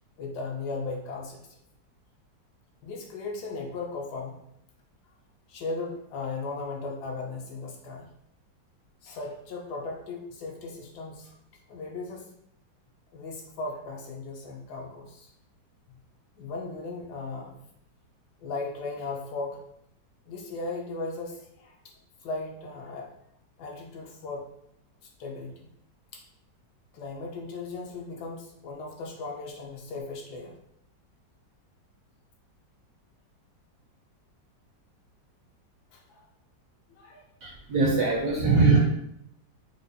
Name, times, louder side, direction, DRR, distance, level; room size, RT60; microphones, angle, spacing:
voice 1, 0.2-1.6 2.8-4.4 5.5-8.1 9.0-11.3 11.7-12.3 13.1-15.3 16.4-17.6 18.4-19.6 20.3-21.7 22.2-23.1 23.6-24.4 25.2-25.7 26.1-26.2 26.9-30.6 35.9-36.2 36.9-37.2 38.1-38.2, left 3 dB, 75° left, 1 dB, 1.1 m, -37 dB
voice 2, 37.4-38.8, right 3 dB, 65° right, -2 dB, 0.9 m, -22 dB
4.7 x 2.1 x 2.6 m, 0.75 s
omnidirectional pair, 1.9 m